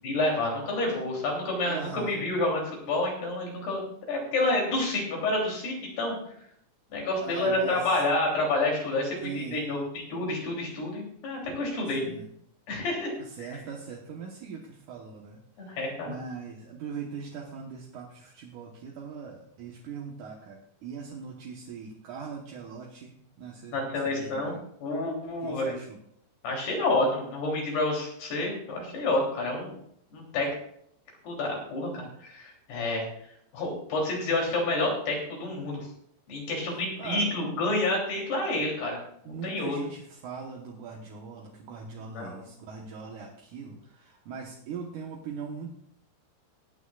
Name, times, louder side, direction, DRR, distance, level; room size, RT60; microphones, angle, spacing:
voice 1, 0.0-3.8 4.1-6.2 6.9-9.8 10.1-12.1 12.7-13.1 13.4-13.5 15.6-16.1 23.7-24.6 24.8-25.8 26.4-29.7 30.1-30.5 31.2-33.1 33.5-35.9 36.3-39.0 39.2-39.8 42.2-42.4, left 2 dB, 75° left, -1 dB, 5.2 m, -29 dB
voice 2, 1.6-2.2 7.2-8.0 9.2-9.6 11.9-12.2 13.2-15.8 16.1-24.6 25.4-26.0 36.7-37.3 39.3-45.7, right 5 dB, 65° right, -1 dB, 2.2 m, -41 dB
22.0 x 9.1 x 2.4 m, 0.68 s
omnidirectional pair, 4.7 m